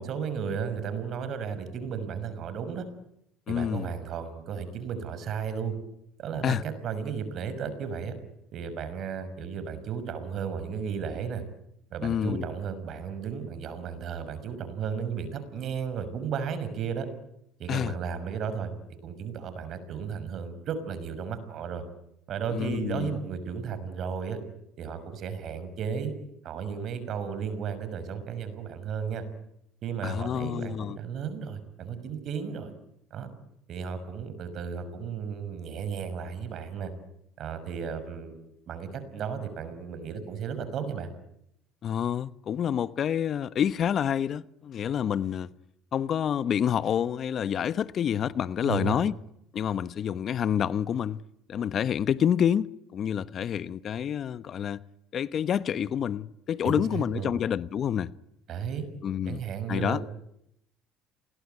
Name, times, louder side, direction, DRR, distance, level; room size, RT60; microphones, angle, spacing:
voice 1, 0.0-2.9 3.5-5.8 6.2-8.1 8.5-11.4 11.9-17.1 17.6-18.7 19.0-21.8 22.3-24.4 24.8-26.1 26.4-29.2 29.8-32.7 33.1-33.3 33.7-36.9 37.4-38.4 38.7-41.1 48.6-49.0 56.6-57.3 58.5-58.9 59.2-60.0, right 7 dB, 55° right, 6.0 m, -34 dB
voice 2, 3.5-3.9 6.4-6.6 12.0-12.4 17.7-17.9 22.5-23.2 30.0-31.0 41.8-45.5 45.9-49.1 49.5-51.2 51.5-54.8 55.1-58.1 59.0-59.4 59.7-60.0, left 9 dB, 50° left, 1.1 m, -28 dB
28.5 x 21.5 x 9.4 m
supercardioid pair, 80°, 0 cm